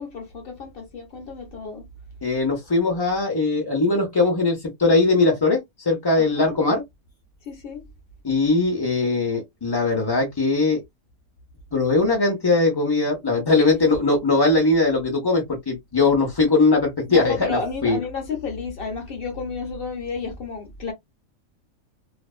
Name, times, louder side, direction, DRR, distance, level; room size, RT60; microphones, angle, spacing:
voice 1, 0.0-1.9 6.2-6.6 7.4-7.8 13.6-13.7 17.1-20.9, left 4 dB, 55° left, 0.7 m, -32 dB
voice 2, 2.2-6.8 8.2-10.8 11.7-18.0, left 3 dB, 35° left, 0.4 m, -20 dB
2.5 x 2.2 x 2.3 m
omnidirectional pair, 1.4 m